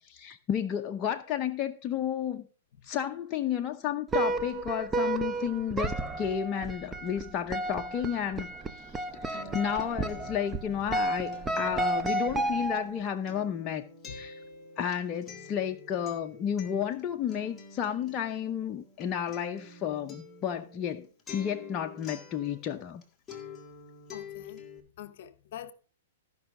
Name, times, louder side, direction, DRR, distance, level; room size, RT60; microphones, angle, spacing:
voice 1, 0.1-2.5 2.8-8.5 9.1-13.8 14.1-14.4 14.8-21.1 21.3-23.0, left 9 dB, 30° left, 0.7 m, -32 dB
sound 1, 4.1-13.1, right 2 dB, 15° right, 0.6 m, -32 dB
Acoustic guitar, 8.8-23.0 23.3-24.8, left 4 dB, 15° left, 1.8 m, -48 dB
voice 2, 24.1-24.7 25.0-25.7, left 10 dB, 60° left, 0.9 m, -44 dB
14.5 x 5.5 x 3.7 m
hypercardioid pair, 125°, 0 cm